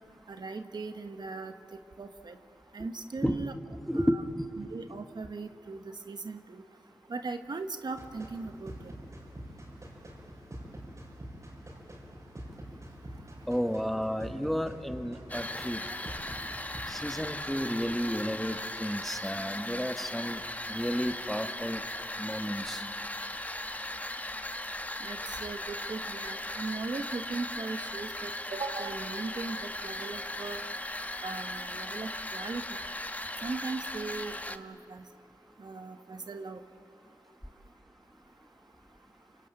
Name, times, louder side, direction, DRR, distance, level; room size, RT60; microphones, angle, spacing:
voice 1, 0.3-1.5 2.0-2.4 2.7-3.5 3.9-4.2 4.6-6.6 7.1-8.9 25.0-30.6 31.2-32.8 33.4-35.0 35.6-36.6, right 3 dB, 65° right, 8 dB, 1.3 m, -38 dB
voice 2, 3.9-4.8 13.5-15.8 16.9-20.4 20.7-21.8 22.2-22.8, equal, ahead, 7 dB, 1.6 m, -32 dB
sound 1, 8.0-17.2, right 1 dB, 40° right, 6.0 m, -46 dB
sound 2, 15.3-34.6, left 1 dB, 20° left, 1.2 m, -38 dB
26.5 x 23.5 x 9.0 m, 2.5 s
cardioid pair, 55°, 8 cm